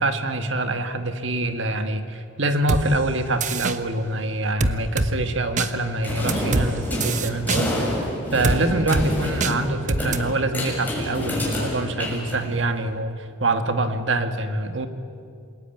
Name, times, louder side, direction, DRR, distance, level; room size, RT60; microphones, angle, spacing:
voice 1, 0.0-7.8 8.3-13.1 13.4-14.9, right 2 dB, 70° right, 8 dB, 1.8 m, -25 dB
sound 1, 2.7-2.8 3.4-3.8 4.6-5.1 5.6-5.7 6.3-6.7 7.0-7.6 8.4-8.6 8.9-9.1 9.4-9.5 9.9-10.2, right 3 dB, 40° right, 1.2 m, -23 dB
sound 2, 6.0-12.8, left 1 dB, 10° left, 6.8 m, -28 dB
28.0 x 21.0 x 9.3 m, 2.4 s
head